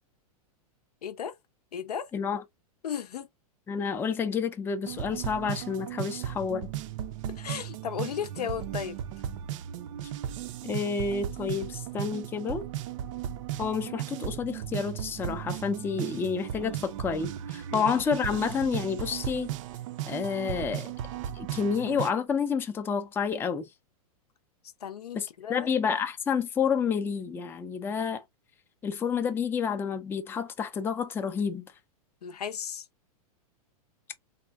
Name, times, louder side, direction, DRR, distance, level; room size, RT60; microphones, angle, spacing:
voice 1, 1.0-1.3 1.7-2.1 2.8-3.3 7.3-9.0 17.7-17.8 24.8-25.7 32.2-32.9, left 8 dB, 85° left, 0.6 m, -35 dB
voice 2, 3.7-6.7 10.6-12.7 13.6-19.5 20.1-20.9 21.4-23.6 25.1-28.2 28.8-31.7, left 6 dB, 10° left, 0.3 m, -29 dB
sound 1, 4.8-22.1, right 11 dB, 55° right, 0.4 m, -36 dB
3.5 x 2.2 x 2.3 m
hypercardioid pair, 115°, 19 cm